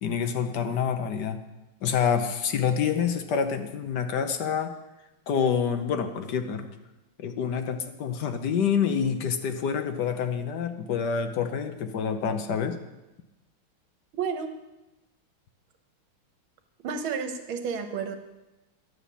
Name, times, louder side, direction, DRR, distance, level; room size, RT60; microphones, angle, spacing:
voice 1, 0.0-1.4 1.8-4.7 5.3-6.7 7.2-12.8, left 7 dB, 60° left, 7 dB, 1.3 m, -27 dB
voice 2, 14.1-14.5 16.8-18.2, right 6 dB, 70° right, 6 dB, 1.8 m, -31 dB
11.5 x 5.8 x 8.4 m, 1.0 s
omnidirectional pair, 2.3 m